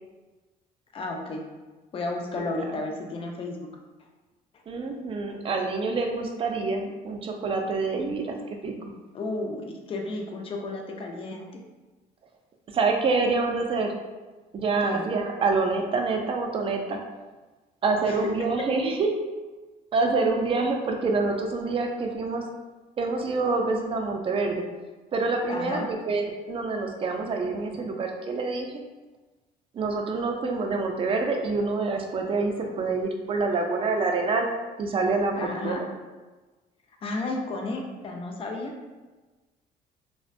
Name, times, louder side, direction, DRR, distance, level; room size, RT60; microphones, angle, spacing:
voice 1, 0.9-1.5 1.9-3.7 5.3-5.4 9.1-11.5 14.8-15.1 18.0-18.3 18.6-18.7 25.5-25.9 35.4-35.8 37.0-38.7, left 2 dB, 35° left, 2 dB, 0.4 m, -32 dB
voice 2, 4.7-8.4 8.6-8.7 12.7-13.9 14.5-17.0 17.8-19.1 19.9-22.4 23.0-24.7 25.1-28.8 29.7-34.5 34.8-35.8, right 3 dB, 35° right, 3 dB, 0.4 m, -26 dB
2.4 x 2.1 x 2.4 m, 1.2 s
cardioid pair, 110°, 17 cm